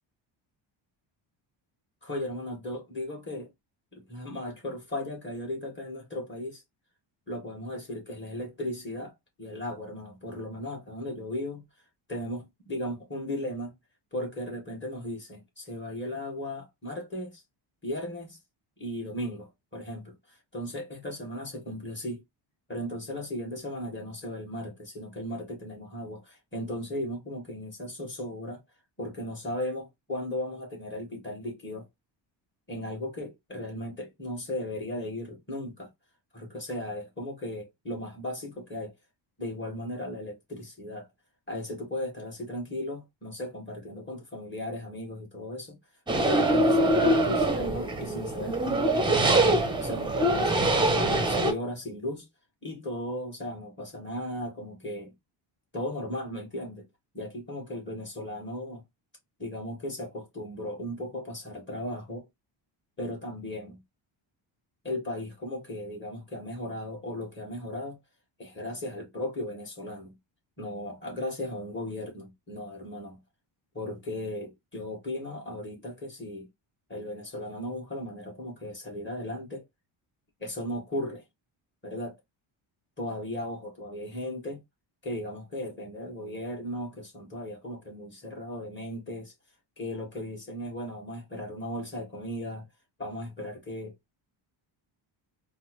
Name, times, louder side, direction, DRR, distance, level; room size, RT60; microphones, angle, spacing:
voice 1, 2.0-3.5 3.9-6.6 7.3-11.6 12.1-13.7 14.1-17.4 17.8-18.4 18.8-22.2 22.7-28.6 29.0-31.9 32.7-35.9 36.3-38.9 39.4-41.1 41.5-45.8 46.1-49.4 49.8-52.3 52.6-55.1 55.7-56.8 57.1-58.8 59.4-62.3 63.0-63.8 64.8-68.0 68.4-70.2 70.6-73.2 73.7-76.5 76.9-79.6 80.4-81.2 81.8-82.2 83.0-84.6 85.0-89.3 89.8-92.7 93.0-93.9, left 1 dB, 25° left, 1.9 m, -36 dB
sound 1, 46.1-51.5, right 1 dB, 10° right, 0.6 m, -24 dB
4.4 x 2.0 x 3.1 m
cardioid pair, 120°, 48 cm